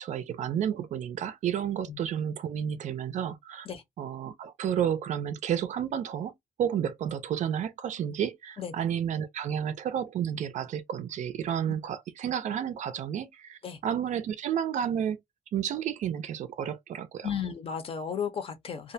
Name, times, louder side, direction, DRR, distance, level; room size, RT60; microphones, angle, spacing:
voice 1, 0.0-3.7 4.0-6.3 6.6-15.2 15.5-17.3, right 9 dB, 65° right, 0.4 m, -31 dB
voice 2, 17.2-18.9, left 7 dB, 45° left, 0.6 m, -34 dB
2.4 x 2.1 x 2.6 m
wide cardioid pair, 170°, 14 cm